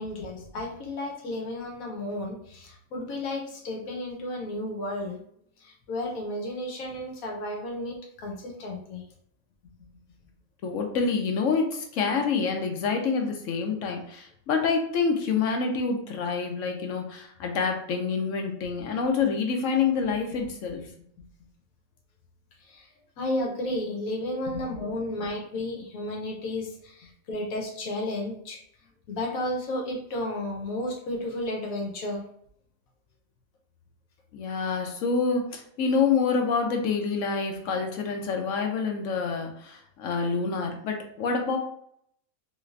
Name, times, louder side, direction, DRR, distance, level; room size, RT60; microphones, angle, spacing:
voice 1, 0.0-5.2 5.6-9.0 22.6-22.9 23.2-28.6 29.1-32.2, left 1 dB, 90° left, 0 dB, 1.3 m, -33 dB
voice 2, 10.6-20.9 24.5-24.6 34.3-41.6, left 5 dB, 70° left, 3 dB, 0.9 m, -27 dB
3.2 x 3.2 x 2.5 m, 0.68 s
omnidirectional pair, 1.4 m